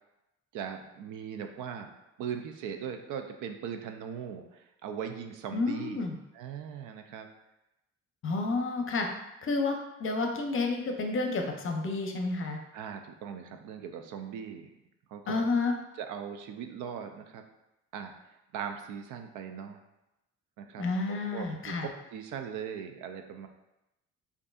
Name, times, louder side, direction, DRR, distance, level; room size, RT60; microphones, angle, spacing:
voice 1, 0.5-1.9 2.2-6.0 6.3-7.3 12.7-14.7 15.1-15.4 16.0-17.4 17.9-18.1 18.5-19.8 20.6-23.5, right 7 dB, 90° right, 6 dB, 0.5 m, -39 dB
voice 2, 5.5-6.2 8.2-9.1 9.4-12.6 15.3-15.7 20.8-21.9, left 3 dB, 45° left, 3 dB, 0.6 m, -30 dB
5.0 x 2.6 x 2.3 m, 0.93 s
cardioid pair, 90°, 30 cm